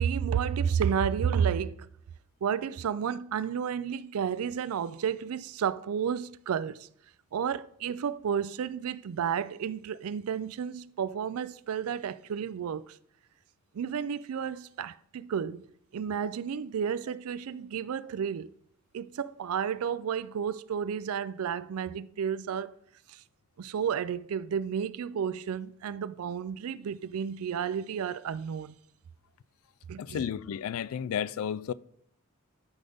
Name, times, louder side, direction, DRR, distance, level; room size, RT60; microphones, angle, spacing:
voice 1, 0.0-1.9 2.4-6.9 7.3-13.0 13.7-15.7 15.9-18.5 18.9-22.7 23.1-23.2 23.6-28.7 29.9-30.3, right 7 dB, 80° right, 0.4 m, -31 dB
voice 2, 30.0-31.7, left 8 dB, 70° left, 0.3 m, -32 dB
12.0 x 5.4 x 3.5 m
head